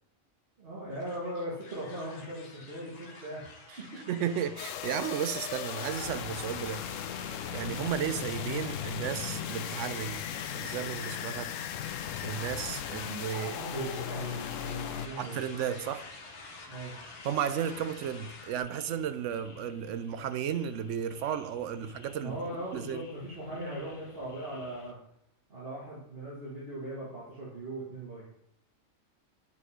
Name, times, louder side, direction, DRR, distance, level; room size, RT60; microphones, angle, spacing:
voice 1, 0.6-4.0 7.6-7.8 13.4-15.4 16.7-17.0 22.1-25.0 25.5-28.3, right 1 dB, 45° right, 2.0 m, -39 dB
sound 1, 0.9-18.6, left 3 dB, 50° left, 1.3 m, -48 dB
voice 2, 4.1-6.8 7.5-10.2 10.5-11.5 12.2-13.6 15.2-16.1 17.2-22.4 22.7-23.0, right 9 dB, 70° right, 0.9 m, -34 dB
sound 2, 4.6-15.1, left 10 dB, 75° left, 0.9 m, -37 dB
sound 3, 6.4-24.9, left 4 dB, 30° left, 0.6 m, -55 dB
8.4 x 4.9 x 5.0 m
omnidirectional pair, 1.4 m